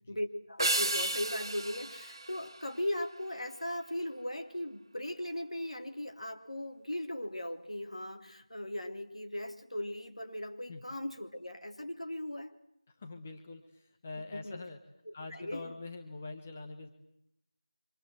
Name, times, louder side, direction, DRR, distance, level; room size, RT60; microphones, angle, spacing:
voice 1, 0.1-12.5 14.3-14.6 15.0-15.8, left 1 dB, 70° left, 6 dB, 3.3 m, -38 dB
sound 1, 0.6-3.2, right 1 dB, 40° right, 1.7 m, -34 dB
voice 2, 12.9-14.8 15.1-16.9, left 3 dB, 15° left, 4 dB, 1.1 m, -44 dB
27.0 x 25.5 x 7.9 m, 0.77 s
figure-of-eight pair, 175°, 3 cm